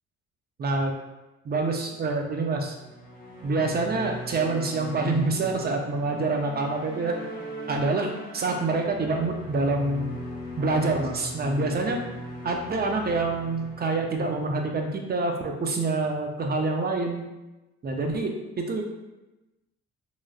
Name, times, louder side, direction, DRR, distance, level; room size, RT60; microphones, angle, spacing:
voice 1, 0.6-0.9 1.4-2.8 3.4-7.2 7.7-10.1 10.6-12.0 12.4-17.2 17.8-18.8, right 3 dB, 35° right, 3 dB, 0.5 m, -26 dB
sound 1, 2.7-15.2, equal, 30° left, 0.8 m, -40 dB
3.0 x 2.5 x 2.3 m, 1.0 s
cardioid pair, 90°, 30 cm